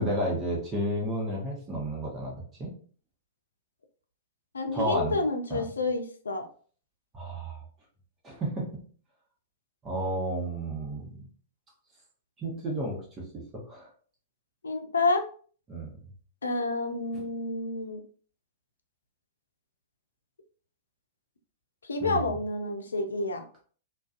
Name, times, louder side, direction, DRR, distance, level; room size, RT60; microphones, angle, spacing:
voice 1, 0.0-2.3 2.6-2.7 4.7-5.1 5.5-5.6 7.1-7.6 8.2-8.7 9.8-11.1 12.4-13.9 15.7-15.9 22.0-22.3, right 1 dB, 25° right, -3 dB, 0.9 m, -31 dB
voice 2, 4.5-6.5 14.6-15.3 16.4-18.0 21.9-23.4, left 3 dB, 75° left, 6 dB, 0.4 m, -29 dB
2.4 x 2.2 x 2.4 m, 0.43 s
figure-of-eight pair, 105°, 0 cm